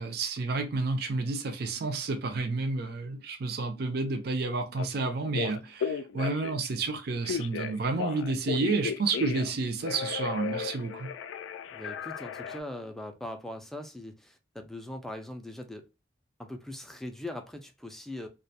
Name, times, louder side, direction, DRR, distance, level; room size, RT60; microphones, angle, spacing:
voice 1, 0.0-11.1, right 3 dB, 55° right, 0.4 m, -30 dB
Telephone, 4.8-4.9 5.3-6.7 7.2-9.6 9.8-12.6, left 7 dB, 85° left, 0.3 m, -35 dB
voice 2, 11.7-15.8 16.4-18.3, left 1 dB, ahead, 0.3 m, -41 dB
2.3 x 2.2 x 2.7 m
head